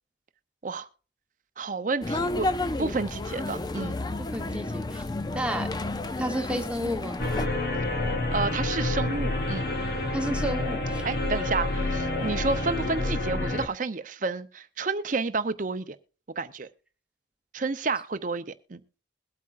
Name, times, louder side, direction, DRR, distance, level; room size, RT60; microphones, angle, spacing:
voice 1, 1.6-2.5 2.8-4.0 8.3-9.7 11.0-16.0 16.4-16.7 17.5-18.8, right 4 dB, 45° right, 0.6 m, -30 dB
sound 1, 2.0-7.5, left 2 dB, 20° left, 0.4 m, -31 dB
voice 2, 4.2-5.0 5.3-5.7 6.2-7.2 10.1-11.0, right 1 dB, 5° right, 1.1 m, -31 dB
sound 2, 7.2-13.7, left 2 dB, 55° left, 1.2 m, -28 dB
21.5 x 8.5 x 2.5 m
head